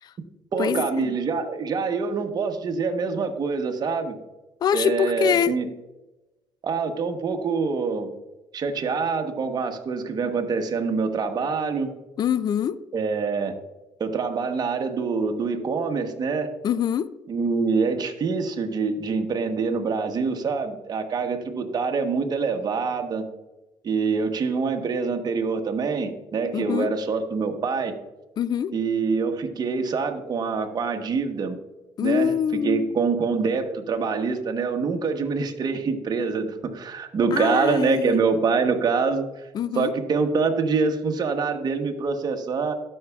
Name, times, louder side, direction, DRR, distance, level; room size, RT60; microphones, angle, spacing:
voice 1, 0.5-4.2 4.7-5.7 6.6-8.1 8.5-11.9 12.9-13.5 14.0-16.5 17.3-23.3 23.8-27.9 28.7-31.6 32.0-39.2 39.7-42.7, right 5 dB, 40° right, 1.1 m, -25 dB
voice 2, 4.6-5.5 12.2-12.8 16.6-17.1 26.5-26.9 28.4-28.7 32.0-32.9 37.3-38.2 39.5-39.9, left 8 dB, 40° left, 0.4 m, -24 dB
12.5 x 5.5 x 2.4 m
cardioid pair, 90°, 10 cm